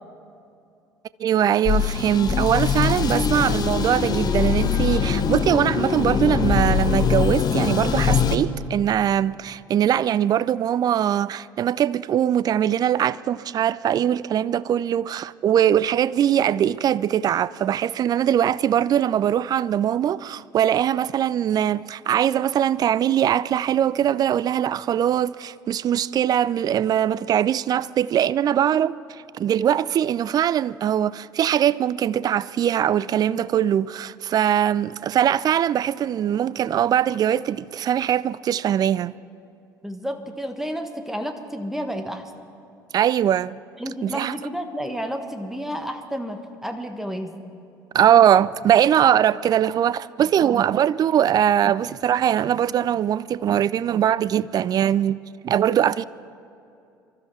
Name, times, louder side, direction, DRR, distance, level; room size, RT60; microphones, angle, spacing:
voice 1, 1.2-29.0 29.4-39.2 42.9-43.6 44.0-44.3 47.9-55.2 55.4-56.0, right 10 dB, 35° right, 0.4 m, -21 dB
sound 1, 1.7-8.4, left 7 dB, 35° left, 1.1 m, -22 dB
voice 2, 3.1-3.6 39.8-42.3 43.8-47.3 50.4-50.6, equal, 5° right, 1.4 m, -31 dB
23.5 x 13.0 x 4.7 m
figure-of-eight pair, 60°, 11 cm